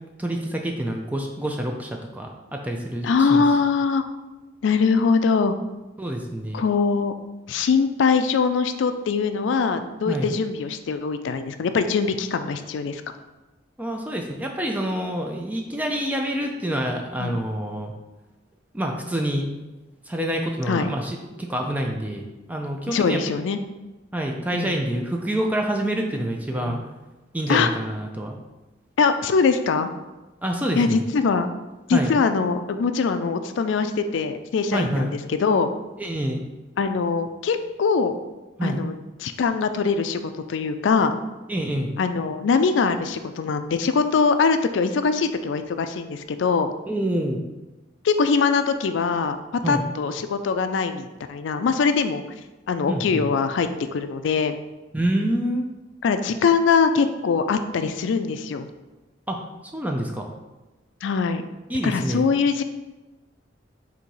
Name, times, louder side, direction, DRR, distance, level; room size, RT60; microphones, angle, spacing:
voice 1, 0.2-3.4 6.0-6.6 10.1-10.3 13.8-17.9 18.7-19.5 20.1-23.2 24.1-26.8 27.3-28.4 30.4-31.0 31.9-32.1 34.7-35.1 36.0-36.4 38.6-38.8 41.5-42.0 46.9-47.4 49.6-49.9 52.9-53.3 54.9-55.7 59.3-59.4 59.7-60.3 61.7-62.3, right 1 dB, 10° right, 2 dB, 0.4 m, -27 dB
voice 2, 3.0-4.0 4.6-5.6 6.5-7.1 7.5-13.0 17.2-17.4 20.7-20.9 22.9-23.6 24.5-24.7 26.6-26.8 27.5-27.7 29.0-29.9 30.8-31.5 31.9-35.7 36.8-38.1 38.6-38.9 39.2-40.2 40.5-41.1 42.0-46.7 48.0-49.4 49.7-52.2 52.7-54.5 56.0-58.7 61.0-61.4 61.8-62.6, left 5 dB, 70° left, 9 dB, 0.3 m, -22 dB
4.0 x 2.8 x 4.5 m, 1.1 s
head